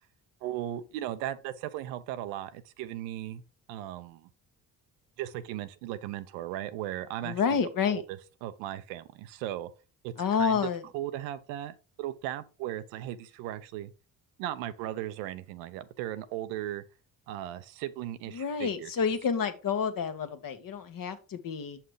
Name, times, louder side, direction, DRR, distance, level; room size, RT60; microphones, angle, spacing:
voice 1, 0.4-3.4 3.7-4.3 5.2-7.4 7.9-8.0 8.4-9.7 10.0-10.1 10.4-10.6 10.9-13.9 14.4-16.8 17.3-18.9 19.4-19.5, right 12 dB, 90° right, 0.6 m, -37 dB
voice 2, 7.2-8.0 10.2-10.8 18.3-21.8, left 6 dB, 50° left, 1.2 m, -29 dB
6.6 x 5.7 x 3.2 m
supercardioid pair, 55°, 43 cm